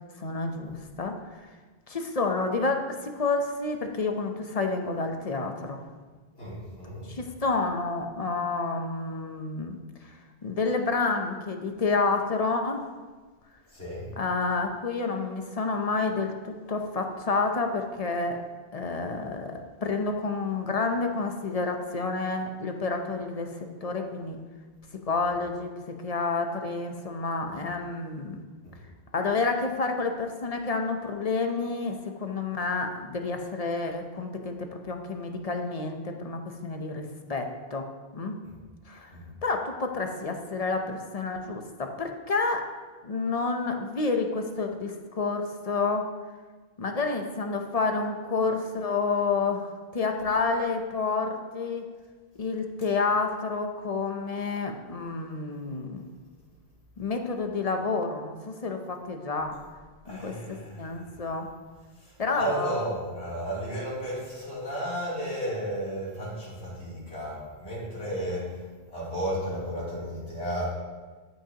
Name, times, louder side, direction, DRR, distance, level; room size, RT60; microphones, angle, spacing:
voice 1, 0.2-1.4 1.9-5.8 7.1-9.8 10.0-10.2 10.4-12.9 14.2-18.4 18.7-24.4 25.1-28.4 29.1-34.6 34.9-37.8 38.1-38.4 38.9-39.1 39.4-42.6 43.0-46.1 46.8-51.9 52.4-56.0 57.0-59.5 60.1-61.5 62.2-62.9, left 3 dB, 40° left, 4 dB, 0.7 m, -29 dB
voice 2, 6.4-7.2 13.7-14.1 38.4-38.5 39.1-39.2 60.0-61.3 62.0-68.6 68.9-70.7, right 1 dB, 80° left, -8 dB, 3.4 m, -33 dB
13.5 x 6.0 x 2.9 m, 1.4 s
omnidirectional pair, 1.1 m